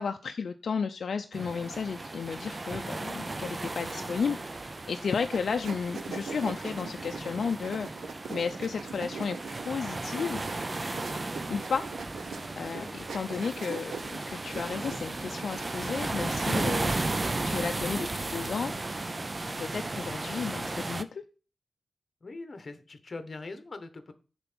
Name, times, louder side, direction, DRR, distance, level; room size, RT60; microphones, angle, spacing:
voice 1, 0.0-9.4 9.6-10.5 11.5-11.8 12.6-16.9 17.4-18.7 19.4-21.2, left 5 dB, 65° left, 6 dB, 0.5 m, -33 dB
sound 1, 1.3-21.0, right 2 dB, 25° right, 0.5 m, -35 dB
sound 2, 5.3-16.1, right 5 dB, 85° right, 0.9 m, -42 dB
voice 2, 22.2-24.1, left 3 dB, 35° left, 9 dB, 1.1 m, -42 dB
6.9 x 4.4 x 6.0 m, 0.35 s
wide cardioid pair, 150°, 0 cm